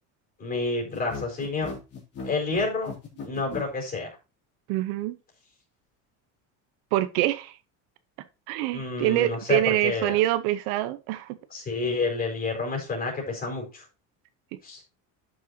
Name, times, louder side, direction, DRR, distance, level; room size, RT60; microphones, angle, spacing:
voice 1, 0.4-1.7 2.2-2.9 3.2-4.1 8.7-10.2 11.5-13.8 14.6-14.8, left 3 dB, 25° left, 4.6 m, -29 dB
sound 1, 0.9-3.7, left 4 dB, 40° left, 3.9 m, -38 dB
voice 2, 4.7-5.1 6.9-7.6 8.5-11.4, right 14 dB, 80° right, 1.0 m, -25 dB
12.0 x 6.7 x 2.9 m
cardioid pair, 160°, 38 cm